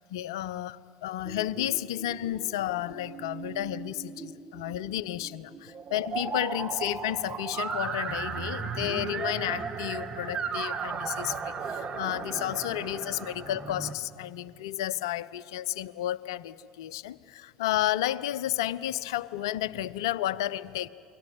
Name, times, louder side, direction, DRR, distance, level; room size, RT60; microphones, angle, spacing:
voice 1, 0.1-20.9, left 13 dB, 70° left, 18 dB, 0.7 m, -32 dB
sound 1, 1.2-13.9, right 5 dB, 30° right, 1.8 m, -36 dB
28.5 x 23.5 x 7.2 m, 2.5 s
figure-of-eight pair, 70°, 3 cm